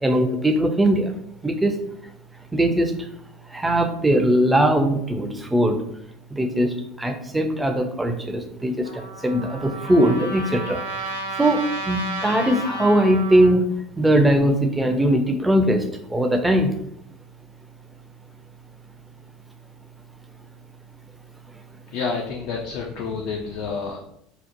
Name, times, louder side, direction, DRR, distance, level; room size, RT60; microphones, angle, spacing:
voice 1, 0.0-1.1 1.4-1.8 2.5-2.9 3.5-5.8 6.3-10.8 11.4-13.6 14.0-15.8 16.1-16.7, right 1 dB, 10° right, 5 dB, 0.4 m, -20 dB
Trumpet, 8.8-13.5, right 1 dB, 80° right, 0.5 m, -32 dB
voice 2, 21.9-24.0, left 5 dB, 60° left, 1 dB, 0.3 m, -29 dB
2.8 x 2.0 x 2.5 m, 0.73 s
figure-of-eight pair, 70°, 0 cm